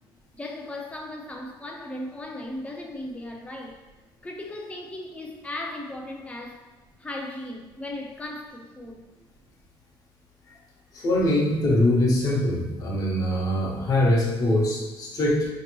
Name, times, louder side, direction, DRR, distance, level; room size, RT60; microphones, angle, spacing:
voice 1, 0.3-3.8 4.2-6.7 7.0-9.1 10.5-10.7, left 1 dB, 15° left, 1 dB, 0.5 m, -37 dB
voice 2, 10.9-15.5, left 1 dB, 40° left, -3 dB, 0.9 m, -23 dB
5.1 x 2.9 x 3.0 m, 1.2 s
cardioid pair, 150°, 9 cm